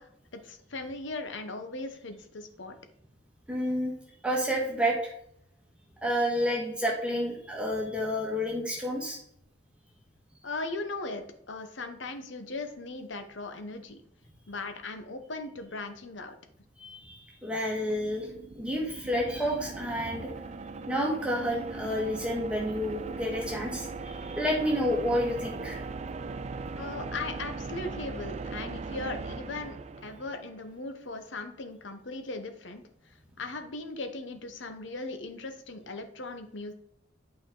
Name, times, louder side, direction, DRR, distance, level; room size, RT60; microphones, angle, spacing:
voice 1, 0.0-2.8 10.4-14.0 14.5-16.3 26.8-36.7, left 3 dB, 70° left, 7 dB, 0.9 m, -38 dB
voice 2, 3.5-3.9 4.2-5.1 6.0-9.2 16.8-18.3 18.5-20.3 20.9-25.8, equal, 5° right, -2 dB, 1.6 m, -30 dB
sound 1, 17.5-30.7, right 3 dB, 35° right, 0.3 m, -39 dB
8.8 x 4.9 x 3.8 m, 0.72 s
head